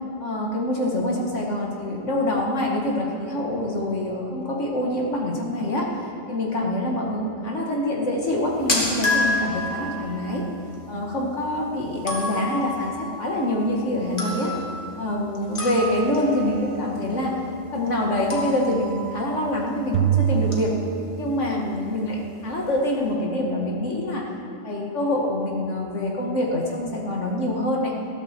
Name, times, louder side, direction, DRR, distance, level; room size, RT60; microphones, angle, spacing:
voice 1, 0.2-5.9 6.3-10.4 10.9-14.5 15.0-17.3 17.7-20.7 21.2-24.2 24.6-27.9, left 1 dB, 65° left, -1 dB, 2.3 m, -25 dB
sound 1, 8.2-20.1 20.4-20.8 21.1-21.3 21.9-22.0 22.2-22.7, left 2 dB, 40° left, 2.4 m, -31 dB
sound 2, 19.9-21.7, right 9 dB, 75° right, 1.1 m, -24 dB
20.0 x 13.0 x 4.6 m, 2.9 s
omnidirectional pair, 1.4 m